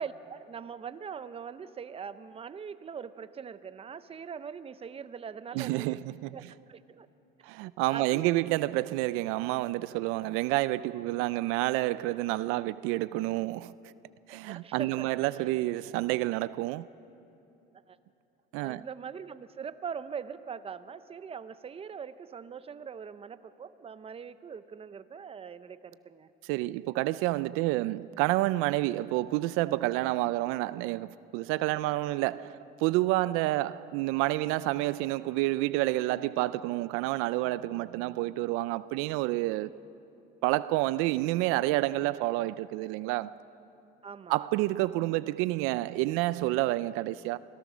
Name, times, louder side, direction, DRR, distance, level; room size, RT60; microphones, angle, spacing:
voice 1, 0.0-6.0 6.3-7.1 7.9-8.5 14.3-15.1 17.9-18.0 18.5-26.3 44.0-44.5, right 6 dB, 30° right, 0.7 m, -42 dB
voice 2, 5.5-6.4 7.4-13.9 14.3-16.9 18.5-18.8 26.4-39.7 40.4-43.3 44.3-47.4, right 18 dB, 90° right, 0.4 m, -29 dB
25.0 x 16.5 x 6.2 m
cardioid pair, 110°, 21 cm